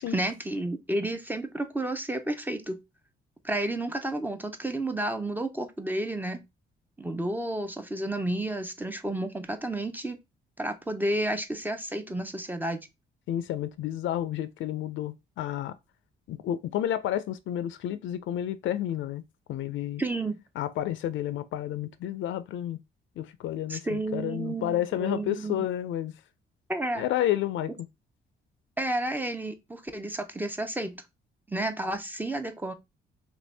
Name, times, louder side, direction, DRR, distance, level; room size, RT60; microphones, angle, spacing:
voice 1, 0.1-2.8 3.4-6.4 7.0-10.2 10.6-12.9 20.0-20.4 23.7-25.7 26.7-27.0 28.8-31.0 31.5-32.7, right 1 dB, 10° right, 0.5 m, -31 dB
voice 2, 13.3-15.7 16.3-19.2 19.5-20.0 20.6-22.8 23.2-26.1 27.0-27.7, left 12 dB, 75° left, 0.4 m, -30 dB
2.9 x 2.6 x 3.2 m
cardioid pair, 90°, 20 cm